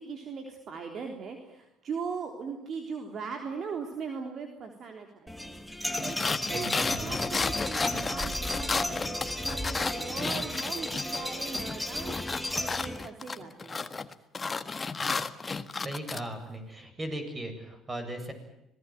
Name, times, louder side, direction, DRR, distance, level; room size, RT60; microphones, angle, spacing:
voice 1, 0.0-5.5 6.0-6.2 6.5-6.7 7.0-12.1 12.6-13.9, right 5 dB, 55° right, 4 dB, 3.5 m, -39 dB
sound 1, 5.3-13.1, left 1 dB, ahead, 2.3 m, -34 dB
sound 2, 6.0-11.2 11.5-16.2, left 4 dB, 30° left, 1.6 m, -33 dB
voice 2, 6.5-7.1 15.8-18.3, right 1 dB, 25° right, 7 dB, 7.9 m, -37 dB
26.0 x 19.0 x 9.3 m, 0.84 s
supercardioid pair, 70°, 0 cm